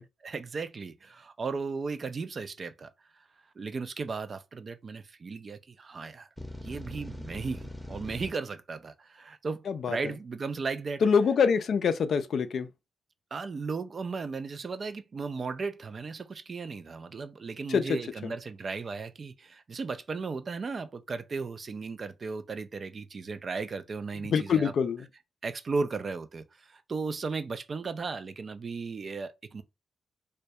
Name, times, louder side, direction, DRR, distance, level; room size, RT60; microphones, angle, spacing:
voice 1, 0.2-3.3 3.6-6.3 6.6-11.0 13.3-24.7 25.4-29.6, right 4 dB, 50° right, 0.3 m, -36 dB
sound 1, 6.4-8.3, left 1 dB, ahead, 0.6 m, -41 dB
voice 2, 9.7-10.0 11.0-12.7 17.7-18.3 24.3-25.0, left 6 dB, 70° left, 0.3 m, -25 dB
2.2 x 2.2 x 2.6 m
cardioid pair, 60°, 0 cm